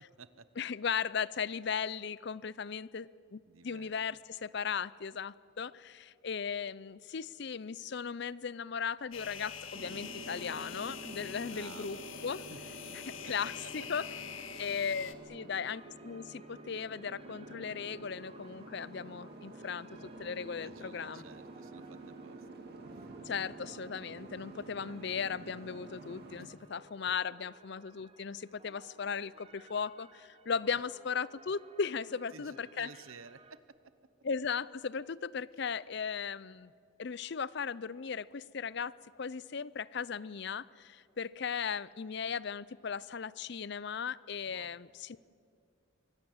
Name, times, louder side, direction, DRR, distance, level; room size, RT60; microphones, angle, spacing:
voice 1, 0.6-12.4 13.1-14.1 14.6-19.9 20.2-21.2 23.2-32.9 34.2-36.7 37.0-45.2, left 6 dB, 55° left, 20 dB, 0.5 m, -37 dB
voice 2, 3.5-3.9 11.5-12.0 12.5-12.6 12.9-13.0 13.2-13.3 13.6-13.9 20.5-22.4 23.0-23.1 26.4-26.7 32.1-33.8 44.4-44.8, right 4 dB, 80° right, 14 dB, 1.0 m, -53 dB
sound 1, 9.1-15.1, left 7 dB, 75° left, 1.5 m, -45 dB
Boat Water vehicle, 9.7-26.5, right 2 dB, 50° right, 2.1 m, -49 dB
sound 2, 14.6-33.6, right 3 dB, 25° right, 1.2 m, -60 dB
24.5 x 24.5 x 7.9 m, 2.4 s
head